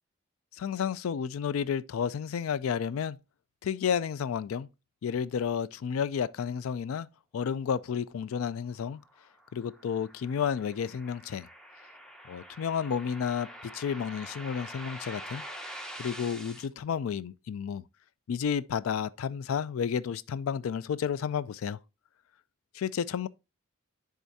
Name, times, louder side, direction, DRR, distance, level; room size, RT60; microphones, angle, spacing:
voice 1, 0.5-3.2 3.6-4.7 5.0-7.1 7.3-9.0 9.5-11.5 12.3-15.4 15.7-17.8 18.3-21.8 22.7-23.3, left 7 dB, 75° left, 0.3 m, -31 dB
sound 1, 8.8-16.7, equal, 5° left, 0.8 m, -45 dB
10.0 x 3.7 x 2.7 m
head